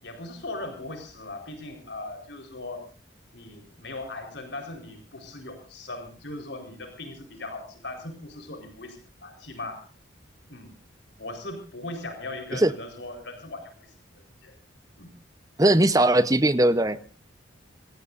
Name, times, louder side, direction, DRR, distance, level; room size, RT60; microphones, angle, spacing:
voice 1, 0.0-2.9 3.3-9.8 10.5-10.7 11.1-13.9 14.4-14.5 15.0-15.1, left 2 dB, 65° left, 5 dB, 4.4 m, -39 dB
voice 2, 15.6-17.0, right 1 dB, 20° right, 13 dB, 0.9 m, -19 dB
26.5 x 18.0 x 2.6 m, 0.36 s
head